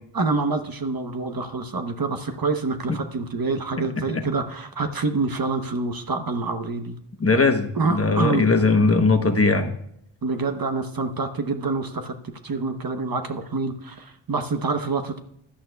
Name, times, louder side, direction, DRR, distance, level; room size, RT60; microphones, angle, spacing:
voice 1, 0.1-7.0 7.8-8.5 10.2-12.1 12.4-15.2, right 3 dB, 45° right, 8 dB, 1.0 m, -26 dB
voice 2, 7.2-9.7, left 3 dB, 30° left, 6 dB, 1.0 m, -19 dB
15.5 x 11.5 x 2.3 m, 0.74 s
wide cardioid pair, 75°, 49 cm